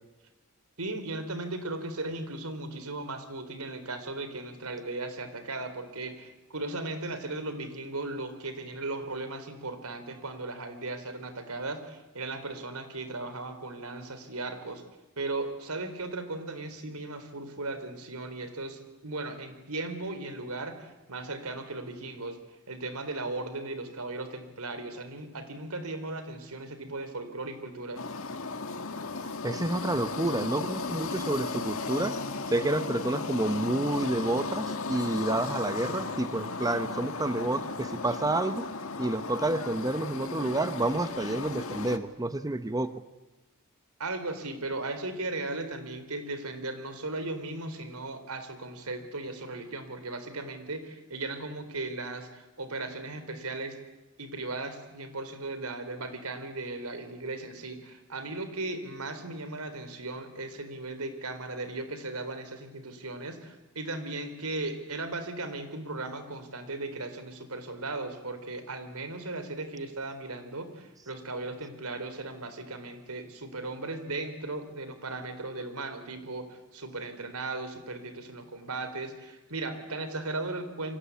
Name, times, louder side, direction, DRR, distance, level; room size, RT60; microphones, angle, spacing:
voice 1, 0.8-14.8 15.2-22.4 22.7-28.0 44.0-53.8 54.2-81.0, right 2 dB, 85° right, 9 dB, 4.0 m, -37 dB
sound 1, 28.0-42.0, left 3 dB, 65° left, 1.9 m, -35 dB
voice 2, 29.4-32.2 32.5-38.7 39.0-42.9, right 2 dB, 15° right, 11 dB, 0.9 m, -29 dB
29.0 x 24.5 x 8.4 m, 1.1 s
head